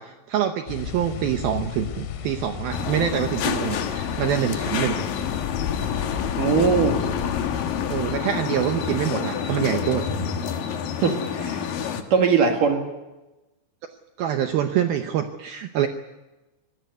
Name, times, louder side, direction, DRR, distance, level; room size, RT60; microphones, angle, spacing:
voice 1, 0.0-5.0 7.9-10.0 14.2-15.9, right 10 dB, 85° right, 6 dB, 2.1 m, -25 dB
sound 1, 0.7-8.2, left 8 dB, 80° left, 4.1 m, -33 dB
sound 2, 2.7-12.0, left 7 dB, 60° left, 2.6 m, -28 dB
voice 2, 6.4-7.0 11.0-11.6 12.1-12.8, right 5 dB, 55° right, 3 dB, 2.9 m, -20 dB
25.5 x 18.0 x 8.2 m, 1.1 s
omnidirectional pair, 5.6 m